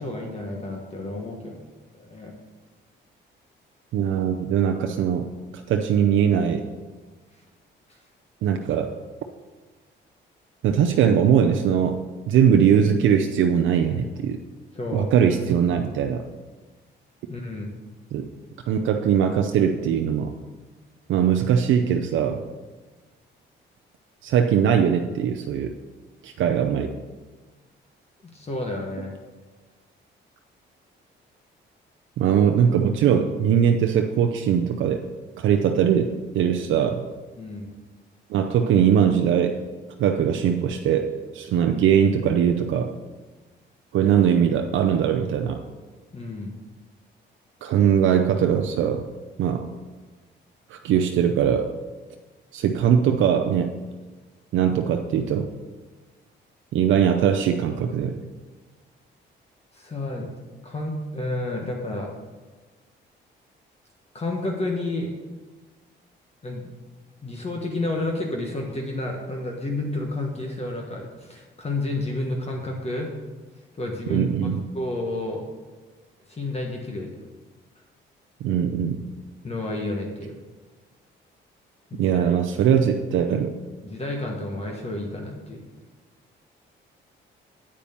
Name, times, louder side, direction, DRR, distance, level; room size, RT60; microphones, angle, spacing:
voice 1, 0.0-1.6 1.9-2.3 14.7-15.1 17.3-17.7 28.3-29.1 37.4-37.7 46.1-46.5 59.7-60.3 60.6-62.1 64.1-65.1 66.4-66.6 67.2-73.1 73.7-74.2 74.7-75.4 76.3-77.1 79.4-80.4 81.9-82.4 83.8-85.6, left 2 dB, 30° left, 1 dB, 1.4 m, -30 dB
voice 2, 3.9-5.3 5.7-6.6 8.4-8.9 10.6-12.0 12.3-14.4 14.9-16.2 18.1-18.3 18.7-20.3 21.1-22.4 24.2-25.7 26.2-26.9 32.2-35.0 35.4-37.1 38.3-39.6 40.0-42.9 43.9-45.6 47.6-49.0 49.4-49.7 50.7-51.7 52.5-53.7 54.5-55.5 56.7-58.2 74.1-74.6 78.4-79.0 82.0-83.6, right 8 dB, 80° right, 4 dB, 0.6 m, -21 dB
8.8 x 5.1 x 7.0 m, 1.3 s
cardioid pair, 90°, 20 cm